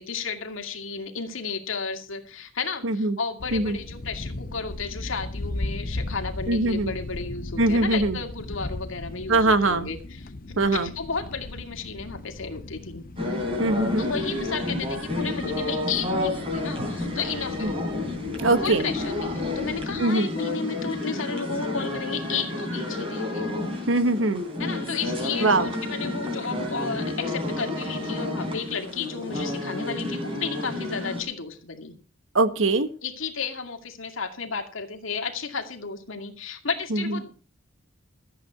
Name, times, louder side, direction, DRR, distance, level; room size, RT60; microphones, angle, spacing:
voice 1, 0.0-13.0 14.0-17.7 18.6-23.5 24.6-31.9 33.0-37.3, left 5 dB, 75° left, 5 dB, 2.3 m, -33 dB
voice 2, 2.8-3.2 3.5-3.8 6.5-6.9 7.6-8.2 9.3-9.9 10.6-10.9 13.6-14.1 17.6-17.7 18.4-18.8 20.0-20.3 23.9-24.4 25.4-25.7 32.3-32.9 36.9-37.2, right 2 dB, 70° right, 11 dB, 1.4 m, -22 dB
sound 1, 3.4-20.0, left 2 dB, 45° left, 0.8 m, -38 dB
sound 2, 13.2-31.2, left 2 dB, 25° right, 4.3 m, -30 dB
14.0 x 8.7 x 5.8 m, 0.37 s
head